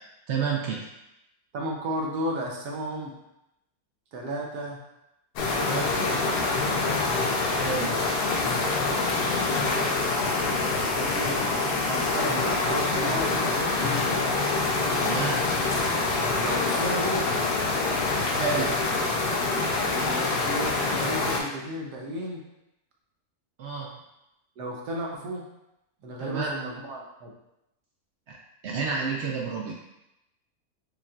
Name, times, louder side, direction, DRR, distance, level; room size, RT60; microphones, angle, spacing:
voice 1, 0.3-0.8 7.6-8.0 15.0-15.4 18.4-18.7 23.6-23.9 26.2-26.5 28.3-28.4 28.6-29.7, right 5 dB, 70° right, -1 dB, 0.6 m, -29 dB
voice 2, 1.5-3.2 4.1-4.8 5.5-6.8 10.9-11.4 11.8-14.4 16.4-17.3 19.9-22.4 24.6-25.5 26.0-27.3, right 1 dB, 90° right, -1 dB, 1.3 m, -34 dB
sound 1, 5.4-21.4, left 3 dB, 85° left, 1.2 m, -26 dB
5.0 x 2.5 x 2.4 m, 0.89 s
omnidirectional pair, 1.7 m